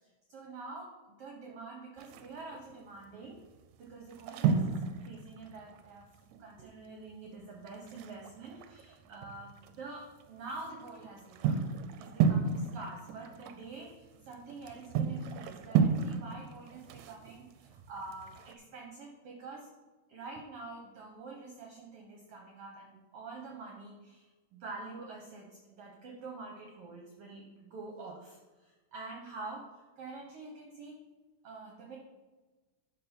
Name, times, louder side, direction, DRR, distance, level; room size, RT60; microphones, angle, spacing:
voice 1, 0.3-3.4 3.8-6.1 6.4-11.6 12.0-19.7 20.1-31.0 31.4-32.0, right 3 dB, 65° right, 0 dB, 1.7 m, -46 dB
sound 1, 2.0-2.6 3.2-3.5 3.7-6.4 6.7-6.8 7.1-7.2 7.7-9.8 10.2-18.5, right 6 dB, 80° right, 1.9 m, -33 dB
11.5 x 4.1 x 4.3 m, 1.2 s
omnidirectional pair, 3.4 m